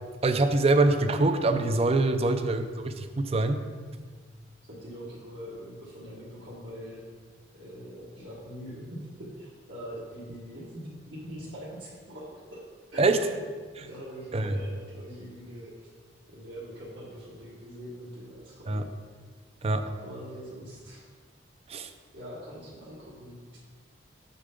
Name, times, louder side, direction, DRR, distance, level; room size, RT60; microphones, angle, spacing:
voice 1, 0.2-3.6 13.0-13.2 13.8-13.9 14.3-14.5 18.7-18.8 19.6-19.8 21.7-21.9, right 2 dB, 30° right, 8 dB, 0.4 m, -24 dB
voice 2, 4.7-7.0 7.5-12.6 12.9-13.4 13.7-15.9 16.3-18.8 20.0-21.0 22.1-23.6, equal, 75° right, -10 dB, 1.6 m, -43 dB
6.6 x 6.5 x 3.8 m, 1.5 s
head